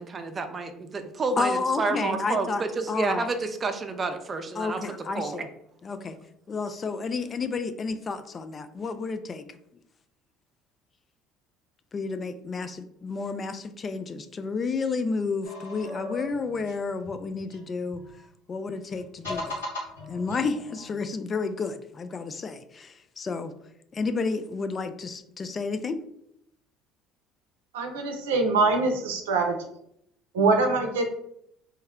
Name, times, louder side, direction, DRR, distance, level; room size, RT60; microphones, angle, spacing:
voice 1, 0.0-5.5, right 3 dB, 35° right, 7 dB, 0.5 m, -30 dB
voice 2, 1.4-2.6 2.9-3.3 4.6-5.5 5.8-6.2 6.5-9.4 11.9-18.0 18.5-19.6 20.1-23.5 23.9-26.0, left 4 dB, 35° left, 9 dB, 0.4 m, -31 dB
sound 1, 15.4-18.2 18.9-20.9, left 2 dB, 85° left, 1.5 m, -38 dB
voice 3, 27.7-29.5 30.3-31.0, right 3 dB, 85° right, 3 dB, 0.5 m, -23 dB
3.2 x 2.1 x 3.5 m, 0.75 s
hypercardioid pair, 65°, 0 cm